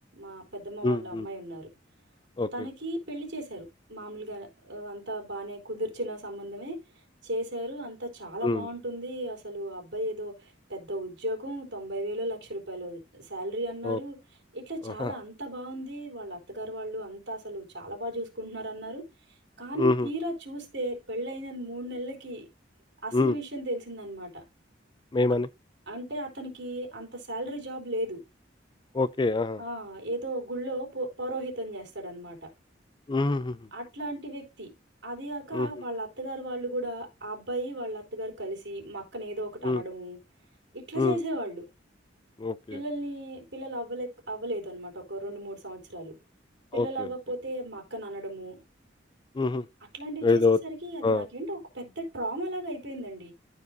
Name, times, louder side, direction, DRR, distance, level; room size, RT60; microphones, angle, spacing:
voice 1, 0.1-1.7 2.5-6.8 7.2-14.2 14.5-19.0 19.6-22.5 23.0-24.4 25.9-28.2 29.6-32.5 33.7-34.7 35.0-40.2 40.7-41.7 42.7-46.2 46.7-48.6 49.9-53.3, right 1 dB, 65° right, 3.8 m, -35 dB
voice 2, 0.8-1.3 2.4-2.5 8.4-8.7 13.8-14.0 14.9-15.1 19.8-20.1 23.1-23.3 25.1-25.5 28.9-29.6 33.1-33.6 35.5-35.7 39.6-39.8 41.0-41.2 42.4-42.8 46.7-47.1 49.4-49.6 50.2-50.6 51.0-51.3, left 3 dB, 25° left, 0.4 m, -25 dB
14.5 x 4.9 x 2.6 m
head